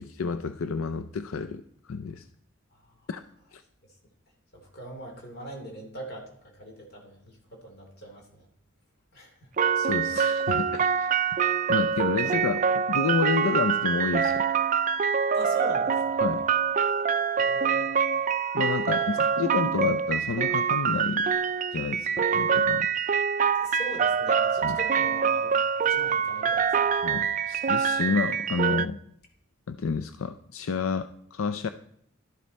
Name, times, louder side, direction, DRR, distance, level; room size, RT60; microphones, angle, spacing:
voice 1, 0.0-2.3 3.1-3.2 3.5-3.6 9.8-11.2 11.7-14.4 16.2-16.4 18.5-21.3 21.7-22.9 24.6-24.8 27.0-29.0 29.7-31.7, left 5 dB, 80° left, 10 dB, 0.5 m, -30 dB
voice 2, 4.5-8.5 9.1-9.5 11.3-11.4 12.0-12.2 15.3-16.2 17.4-17.9 18.8-19.4 23.5-25.6 25.8-26.8, right 2 dB, 50° left, 1 dB, 2.9 m, -41 dB
sound 1, 9.6-28.9, right 6 dB, 40° right, 0.4 m, -25 dB
12.5 x 11.0 x 4.2 m, 0.70 s
head